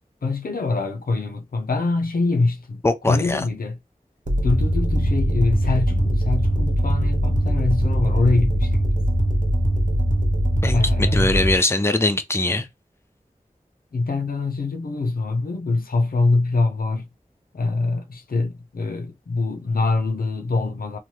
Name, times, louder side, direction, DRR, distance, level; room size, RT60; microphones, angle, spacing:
voice 1, 0.2-3.8 4.4-8.9 10.7-11.4 13.9-17.1 17.5-21.0, left 3 dB, 90° left, 0.5 m, -24 dB
voice 2, 2.8-3.4 10.6-12.7, left 2 dB, 15° left, 0.5 m, -21 dB
sound 1, 4.3-11.6, equal, 60° right, 0.7 m, -21 dB
2.8 x 2.2 x 3.1 m
wide cardioid pair, 60°, 15 cm